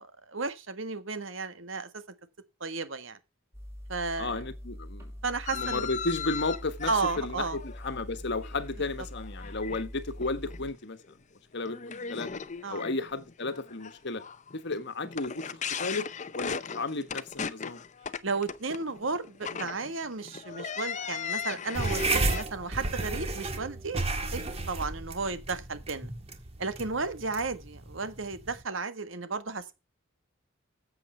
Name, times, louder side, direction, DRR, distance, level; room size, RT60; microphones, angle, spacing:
voice 1, 0.0-2.0 2.6-3.2 3.9-4.4 5.2-5.9 6.9-7.6 12.6-12.9 18.2-26.1 26.6-29.7, right 4 dB, 70° right, 1.6 m, -33 dB
sound 1, 3.5-10.7, equal, 15° right, 5.6 m, -43 dB
voice 2, 4.2-5.1 5.5-11.1 11.5-12.3 12.7-14.2 14.5-16.1 16.3-17.8, left 3 dB, 60° left, 1.3 m, -33 dB
sound 2, 5.5-8.8 9.1-9.8 10.2-10.6 11.0-11.1 11.6-22.4, left 6 dB, 35° left, 0.7 m, -37 dB
sound 3, 21.7-28.6, right 2 dB, 30° right, 1.6 m, -33 dB
13.5 x 7.8 x 4.4 m
head